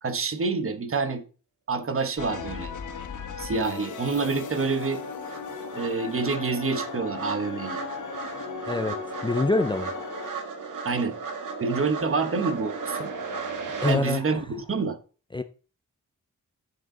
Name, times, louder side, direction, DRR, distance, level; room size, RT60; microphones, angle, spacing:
voice 1, 0.0-1.2 1.7-2.7 3.4-5.0 5.7-7.8 10.8-11.2 11.6-13.1 13.9-15.0, right 4 dB, 45° right, 1.1 m, -27 dB
sound 1, 2.2-10.3, left 5 dB, 70° left, 1.3 m, -37 dB
sound 2, 3.9-4.0 4.3-14.0, right 4 dB, 80° right, 1.5 m, -36 dB
voice 2, 8.7-9.0 9.2-9.9 13.8-14.4 15.3-15.4, left 2 dB, 15° left, 0.4 m, -25 dB
8.0 x 7.5 x 3.8 m
wide cardioid pair, 170°, 31 cm